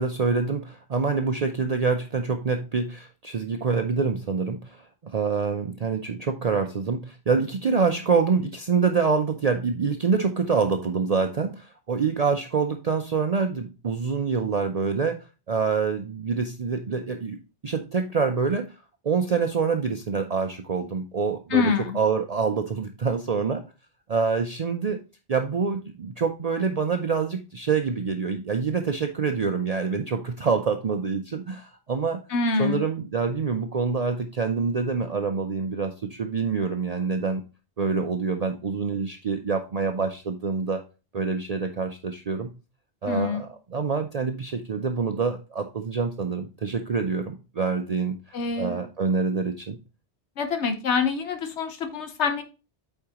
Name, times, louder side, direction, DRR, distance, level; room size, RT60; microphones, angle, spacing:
voice 1, 0.0-15.2 15.5-17.4 17.6-18.8 19.0-23.6 24.1-25.0 25.3-32.2 32.6-37.4 37.8-40.8 41.1-42.5 43.0-49.8, right 5 dB, 45° right, 5 dB, 0.6 m, -26 dB
voice 2, 21.5-22.0 32.3-32.8 43.1-43.4 48.3-48.8 50.4-52.4, left 5 dB, 90° left, 6 dB, 1.2 m, -25 dB
8.4 x 4.5 x 2.9 m, 0.30 s
omnidirectional pair, 1.1 m